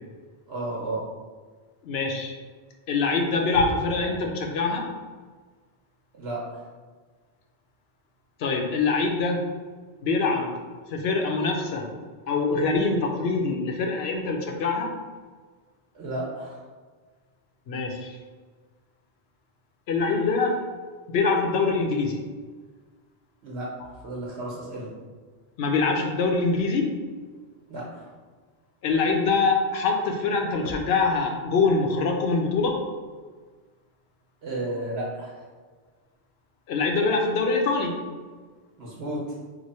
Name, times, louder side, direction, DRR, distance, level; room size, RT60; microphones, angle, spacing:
voice 1, 0.5-1.1 6.1-6.7 15.9-16.7 23.4-23.7 24.0-24.9 27.7-28.1 34.4-35.5 38.8-39.4, right 1 dB, 70° right, -5 dB, 1.1 m, -33 dB
voice 2, 1.8-2.3 2.9-4.9 8.4-9.4 10.0-10.5 10.9-11.9 12.3-14.9 17.7-18.2 19.9-20.6 21.1-22.2 25.6-26.9 28.8-32.8 36.7-37.9, left 4 dB, 70° left, 2 dB, 0.8 m, -24 dB
3.1 x 2.2 x 4.1 m, 1.4 s
omnidirectional pair, 1.1 m